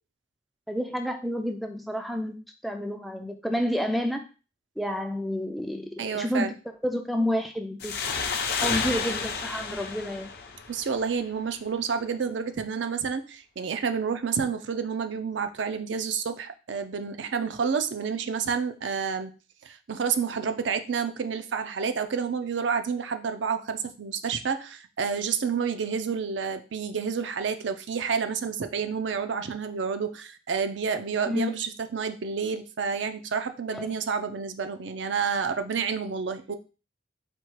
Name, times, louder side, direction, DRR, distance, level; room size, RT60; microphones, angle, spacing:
voice 1, 0.7-4.2 4.8-7.9 8.5-10.3 31.3-31.5 33.7-33.9, equal, ahead, 4 dB, 0.3 m, -30 dB
voice 2, 6.0-6.5 10.7-19.3 19.6-36.6, right 6 dB, 70° right, 8 dB, 0.4 m, -29 dB
sound 1, 7.8-11.2, left 5 dB, 50° left, 0.6 m, -31 dB
4.4 x 2.4 x 4.5 m, 0.34 s
head